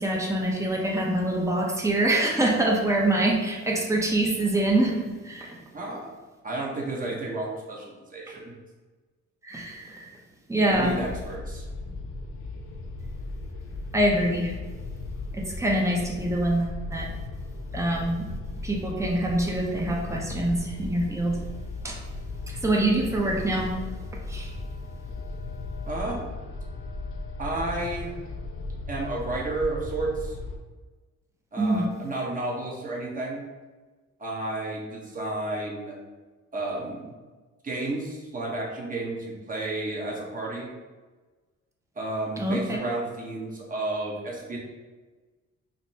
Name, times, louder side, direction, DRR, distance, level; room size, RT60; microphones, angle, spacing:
voice 1, 0.0-5.6 9.4-10.1 10.5-11.0 13.9-14.5 15.3-17.1 17.7-18.3 18.6-21.4 21.8-22.0 22.6-23.7 24.3-24.5 31.6-31.9 42.4-42.8, right 1 dB, 10° right, -1 dB, 0.7 m, -25 dB
voice 2, 5.7-6.1 6.4-8.5 10.7-11.6 25.9-26.3 27.4-28.1 28.9-30.4 31.5-33.4 34.2-35.9 36.5-37.1 37.6-40.7 42.0-44.6, right 2 dB, 25° right, -3 dB, 1.1 m, -32 dB
sound 1, 10.7-30.6, left 2 dB, 45° left, 0.5 m, -37 dB
5.1 x 2.1 x 2.8 m, 1.3 s
cardioid pair, 90°, 30 cm